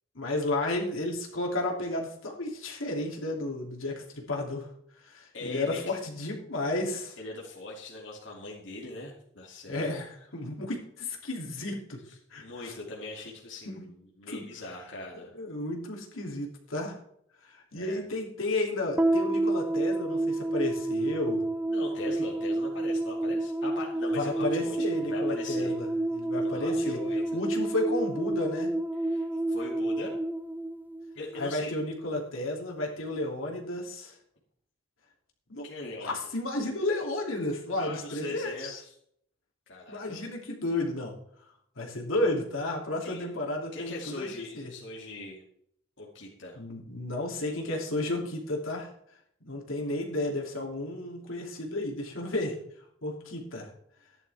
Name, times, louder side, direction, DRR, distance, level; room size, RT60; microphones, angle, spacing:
voice 1, 0.1-4.7 5.0-7.2 9.7-12.0 12.3-12.7 13.7-13.8 14.3-14.4 14.7-14.8 15.3-17.0 17.4-21.4 24.1-27.0 27.3-28.7 31.4-34.2 35.5-35.7 36.0-38.8 39.9-41.1 41.8-44.7 46.5-48.9 49.4-52.6 53.0-53.7, left 2 dB, 85° left, -1 dB, 2.9 m, -32 dB
voice 2, 5.3-5.8 7.2-9.9 12.1-15.3 17.7-18.0 21.7-25.8 26.4-27.4 29.0-30.1 31.1-31.7 35.6-36.1 37.8-38.9 39.7-40.2 43.0-43.3 43.7-45.4 46.0-46.6, left 2 dB, 65° left, -3 dB, 2.4 m, -41 dB
sound 1, 19.0-31.5, right 1 dB, 10° right, 0.4 m, -29 dB
15.0 x 10.5 x 3.5 m, 0.70 s
head